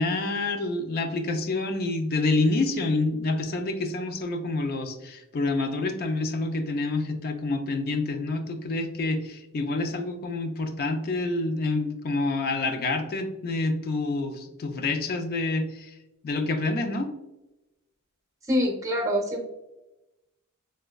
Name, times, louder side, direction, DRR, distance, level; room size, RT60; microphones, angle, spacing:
voice 1, 0.0-15.9 16.2-17.1, left 2 dB, 45° left, 6 dB, 0.4 m, -27 dB
voice 2, 18.5-19.5, equal, 15° right, 0 dB, 0.6 m, -25 dB
4.7 x 2.1 x 2.2 m, 0.97 s
head